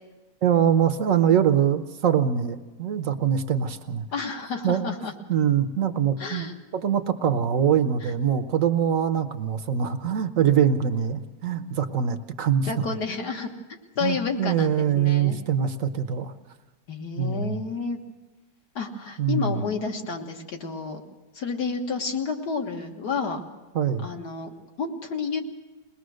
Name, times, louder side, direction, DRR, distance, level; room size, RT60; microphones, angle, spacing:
voice 1, 0.4-4.0 4.6-4.8 5.3-12.7 14.0-16.3 17.2-17.6 19.2-19.6 23.7-24.1, right 8 dB, 55° right, 10 dB, 1.1 m, -23 dB
voice 2, 4.1-5.1 6.2-6.5 8.0-8.1 12.6-13.5 14.0-15.4 16.9-18.0 18.8-21.0 21.3-23.4 24.0-25.4, left 4 dB, 70° left, 3 dB, 2.1 m, -30 dB
21.5 x 20.0 x 6.4 m, 1.2 s
omnidirectional pair, 1.8 m